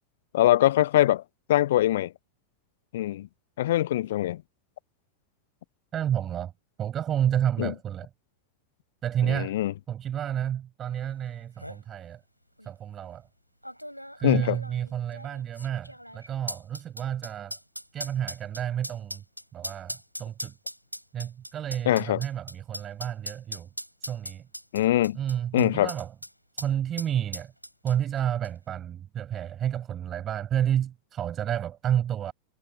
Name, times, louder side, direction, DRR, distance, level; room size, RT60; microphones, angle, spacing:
voice 1, 0.3-1.2 1.5-2.1 2.9-3.3 3.6-4.4 7.6-7.7 9.3-9.7 14.2-14.6 21.9-22.2 24.7-25.2 25.5-25.9, left 14 dB, 55° left, 0.5 m, -23 dB
voice 2, 5.9-6.5 6.8-8.1 9.0-9.5 9.9-12.2 12.7-13.3 14.2-17.6 17.9-19.2 19.5-20.5 21.1-23.7 24.0-24.5 25.1-26.1 26.5-27.5 27.8-32.3, right 10 dB, 25° right, 7.5 m, -30 dB
sound 1, 11.1-11.2 11.4-11.8 12.6-12.7 13.6-26.3 26.6-26.7 27.0-28.2 28.4-28.5, equal, 90° left, 6.8 m, -39 dB
figure-of-eight pair, 90°, 0 cm